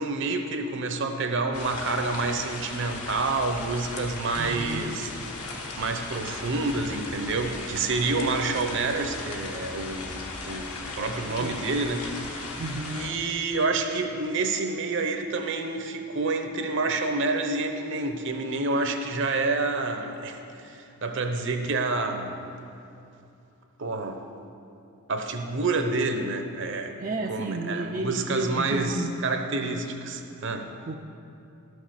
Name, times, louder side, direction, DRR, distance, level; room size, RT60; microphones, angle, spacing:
voice 1, 0.0-5.1 5.8-12.1 12.4-12.6 12.9-22.5 23.8-24.2 25.1-27.0 27.3-30.7, right 3 dB, 55° right, 6 dB, 0.8 m, -28 dB
sound 1, 1.5-13.1, left 3 dB, 75° left, 1.4 m, -37 dB
voice 2, 4.4-4.8 11.3-11.5 12.6-13.0 27.0-29.1 30.9-31.0, right 2 dB, 35° right, 1 dB, 0.4 m, -32 dB
12.0 x 6.4 x 6.6 m, 2.7 s
head